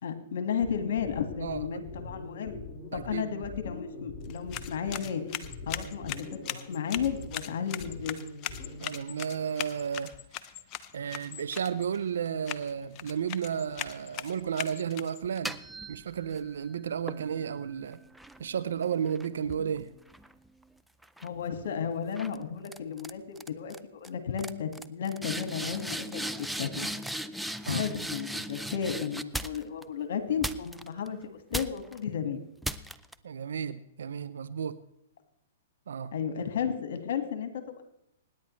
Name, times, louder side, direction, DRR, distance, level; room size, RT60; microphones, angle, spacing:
voice 1, 0.0-2.6 2.9-5.2 5.6-6.1 6.5-8.2 21.2-26.9 27.7-32.4 36.1-37.8, left 7 dB, 65° left, 1.8 m, -33 dB
sound 1, 0.6-9.0, left 2 dB, 15° left, 4.5 m, -43 dB
voice 2, 1.4-1.8 2.9-3.3 8.8-10.1 10.9-15.6 15.9-18.0 18.4-19.9 27.7-27.8 33.2-34.8 35.9-36.1, right 7 dB, 75° right, 0.6 m, -33 dB
sound 2, 4.2-15.4, left 11 dB, 35° left, 0.7 m, -41 dB
sound 3, 15.2-16.5 17.1-20.6 21.0-21.4 22.2-22.4 22.6-23.1 23.4-23.8 24.0-24.1 24.4-29.8 30.4-31.1 31.5-32.0 32.6-33.1, right 1 dB, ahead, 0.5 m, -38 dB
25.5 x 10.0 x 3.2 m
hypercardioid pair, 120°, 0 cm